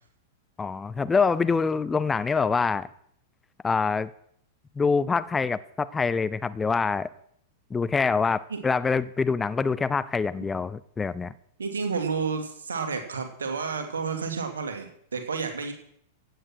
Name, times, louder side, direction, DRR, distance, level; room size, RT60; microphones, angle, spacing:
voice 1, 0.6-2.9 3.6-4.1 4.8-7.1 7.7-11.3, left 5 dB, 15° left, 17 dB, 0.6 m, -25 dB
voice 2, 11.6-15.7, right 5 dB, 70° right, 6 dB, 2.8 m, -30 dB
16.0 x 9.2 x 6.3 m, 0.68 s
figure-of-eight pair, 95°, 0 cm